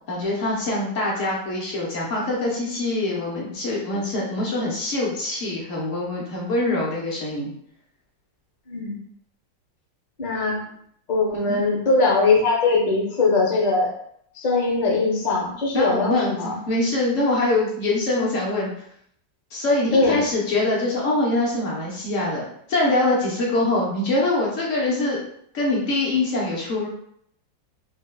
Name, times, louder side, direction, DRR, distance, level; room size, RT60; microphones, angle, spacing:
voice 1, 0.1-7.5 11.5-11.6 15.7-18.7 19.5-22.4 22.7-25.2 25.5-26.9, left 2 dB, 65° left, -4 dB, 0.8 m, -24 dB
voice 2, 8.7-9.0 10.2-10.6 11.1-13.9 14.3-16.6 19.9-20.2, left 3 dB, 90° left, -2 dB, 0.4 m, -21 dB
4.1 x 2.1 x 2.2 m, 0.69 s
omnidirectional pair, 2.0 m